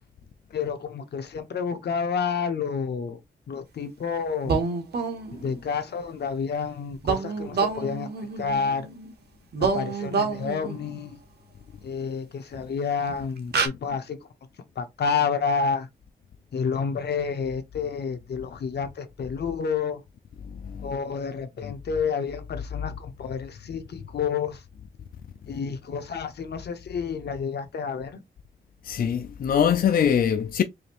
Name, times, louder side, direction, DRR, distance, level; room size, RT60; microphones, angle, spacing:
voice 1, 0.5-3.2 3.5-4.6 5.3-8.1 8.4-8.9 9.6-11.2 11.8-14.3 14.8-15.9 16.5-20.0 20.8-24.6 25.5-28.2, left 6 dB, 90° left, 0.9 m, -29 dB
sound 1, 4.4-5.6 7.0-9.1 9.5-11.0 12.5-12.6 13.1-13.2 13.5-13.7, right 5 dB, 85° right, 1.0 m, -28 dB
voice 2, 20.5-20.9 21.6-21.7 28.8-30.6, left 8 dB, 60° left, 0.4 m, -23 dB
5.0 x 2.6 x 2.9 m
wide cardioid pair, 155°, 17 cm